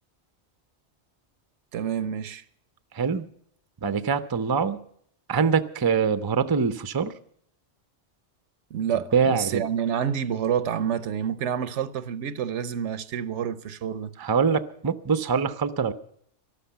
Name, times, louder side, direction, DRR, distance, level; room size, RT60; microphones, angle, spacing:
voice 1, 1.7-2.4 8.7-14.1, right 8 dB, 80° right, 1.0 m, -28 dB
voice 2, 2.9-3.2 3.8-4.8 5.3-7.1 9.1-9.6 14.2-15.9, right 6 dB, 25° right, 0.5 m, -24 dB
13.5 x 12.0 x 6.8 m
omnidirectional pair, 1.2 m